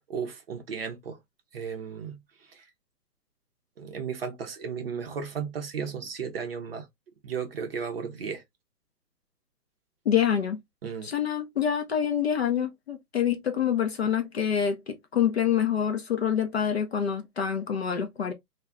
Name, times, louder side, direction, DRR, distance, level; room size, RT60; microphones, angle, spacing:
voice 1, 0.1-1.2 1.5-2.2 2.5-2.6 3.8-6.9 7.2-8.4 10.8-11.1, right 6 dB, 40° right, 0.6 m, -34 dB
voice 2, 10.1-10.6 11.0-18.3, left 8 dB, 45° left, 0.5 m, -26 dB
2.2 x 2.2 x 3.4 m
hypercardioid pair, 145°, 48 cm